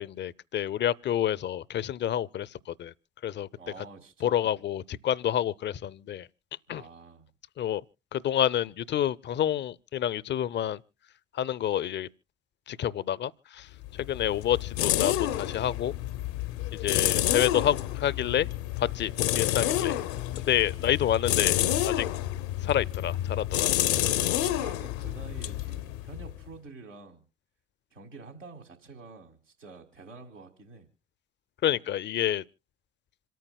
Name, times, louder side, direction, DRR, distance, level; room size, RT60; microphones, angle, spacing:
voice 1, 0.0-2.5 2.8-2.9 3.2-3.5 4.2-6.3 6.7-6.8 7.6-7.8 8.1-10.8 11.3-12.1 12.7-13.7 13.9-15.9 16.7-18.5 18.8-20.0 20.5-22.1 22.6-23.7 31.6-32.4, left 10 dB, 30° left, 0.5 m, -28 dB
voice 2, 3.6-4.5 6.7-7.3 20.8-20.9 24.3-27.2 27.9-30.9, right 4 dB, 90° right, 1.9 m, -48 dB
sound 1, 13.8-26.5, left 13 dB, 65° left, 0.7 m, -29 dB
27.0 x 9.2 x 2.2 m
figure-of-eight pair, 50°, 37 cm